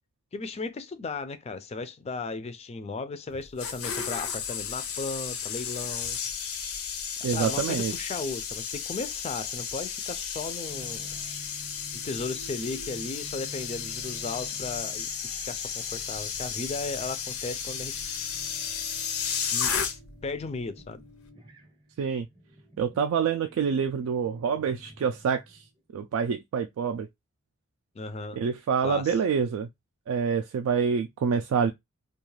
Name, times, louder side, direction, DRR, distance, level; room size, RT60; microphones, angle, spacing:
voice 1, 0.3-6.2 7.2-11.1 12.0-18.0 19.5-19.7 20.2-21.0 28.0-28.4 28.8-29.2, left 3 dB, 30° left, 0.3 m, -36 dB
sound 1, 3.3-20.3 20.5-20.8, left 7 dB, 85° left, 0.6 m, -33 dB
voice 2, 7.2-7.9 22.0-22.3 22.8-25.6 25.9-27.1 28.4-29.7 30.1-31.7, right 6 dB, 80° right, 0.3 m, -27 dB
sound 2, 10.7-25.8, right 2 dB, 20° right, 0.6 m, -50 dB
2.4 x 2.3 x 3.1 m
head